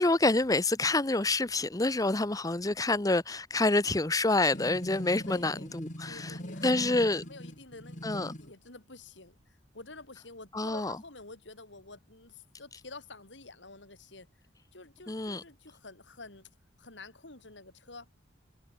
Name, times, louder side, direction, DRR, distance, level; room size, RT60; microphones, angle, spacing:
voice 1, 0.0-6.4 6.6-7.2 8.0-8.3 10.5-11.0 15.1-15.4, left 2 dB, 20° left, 0.9 m, -27 dB
sound 1, 4.5-8.5, equal, 45° left, 6.7 m, -41 dB
voice 2, 5.3-5.7 6.0-14.3 14.7-16.5 16.8-18.1, left 3 dB, 85° left, 4.9 m, -49 dB
head